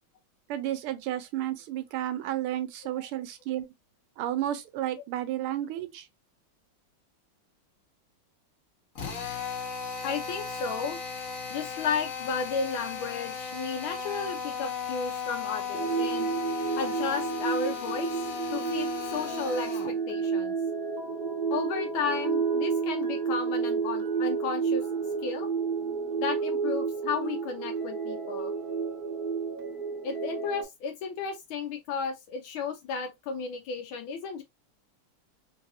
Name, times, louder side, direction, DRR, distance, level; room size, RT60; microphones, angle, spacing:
voice 1, 0.5-3.6 4.2-6.1, right 12 dB, 85° right, 1.5 m, -32 dB
Drill, 8.9-20.0, left 7 dB, 50° left, 1.2 m, -36 dB
voice 2, 10.0-11.0 11.5-16.3 16.8-20.5 21.5-24.8 25.2-25.5 26.2-28.5 30.0-34.4, left 5 dB, 75° left, 1.3 m, -33 dB
sound 1, 15.7-30.6, right 5 dB, 60° right, 1.3 m, -30 dB
3.9 x 2.4 x 2.6 m
omnidirectional pair, 2.4 m